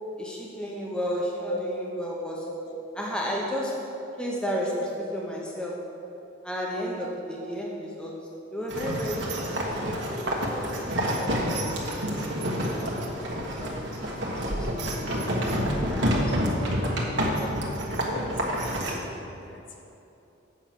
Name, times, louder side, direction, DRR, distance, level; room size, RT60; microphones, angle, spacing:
voice 1, 0.2-2.5 3.0-3.8 4.2-4.8 5.1-5.8 6.4-11.7 12.6-12.8 13.5-13.8 14.2-14.7 15.8-17.1, equal, 5° left, -3 dB, 0.9 m, -33 dB
voice 2, 2.4-2.8 4.6-4.7 7.0-7.1 18.0-19.9, left 2 dB, 65° left, 1 dB, 1.0 m, -40 dB
sound 1, 8.7-19.0, equal, 60° right, 1.3 m, -28 dB
8.2 x 5.9 x 5.8 m, 3.0 s
head